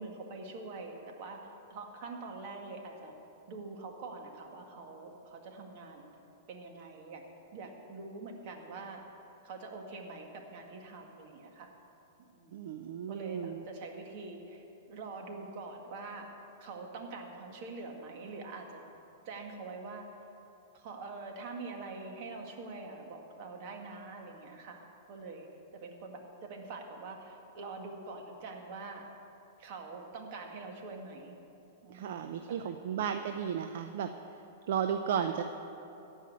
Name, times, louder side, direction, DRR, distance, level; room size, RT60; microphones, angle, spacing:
voice 1, 0.0-3.1 3.5-6.1 6.5-7.2 7.5-9.2 9.4-11.7 12.2-12.7 13.1-16.3 16.6-18.8 19.2-20.1 20.7-25.5 25.7-29.0 29.6-31.4 31.8-33.0 35.2-35.3, right 3 dB, 50° right, 2 dB, 2.0 m, -45 dB
voice 2, 12.5-13.7 31.9-34.4 34.7-35.4, right 8 dB, 65° right, 7 dB, 0.6 m, -34 dB
15.0 x 5.6 x 9.6 m, 2.9 s
hypercardioid pair, 130°, 0 cm